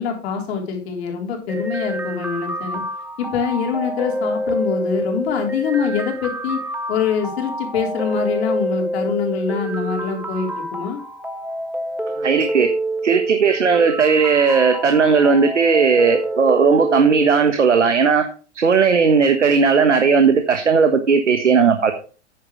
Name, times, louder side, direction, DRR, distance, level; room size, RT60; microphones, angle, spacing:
voice 1, 0.0-2.8 3.2-6.6 6.9-11.0, left 6 dB, 60° left, 2 dB, 3.9 m, -24 dB
sound 1, 1.5-17.5, right 1 dB, 5° right, 1.5 m, -27 dB
voice 2, 12.2-12.7 13.0-18.2 18.5-21.9, right 5 dB, 90° right, 7 dB, 1.4 m, -16 dB
10.5 x 9.5 x 3.2 m, 0.37 s
hypercardioid pair, 100°, 35 cm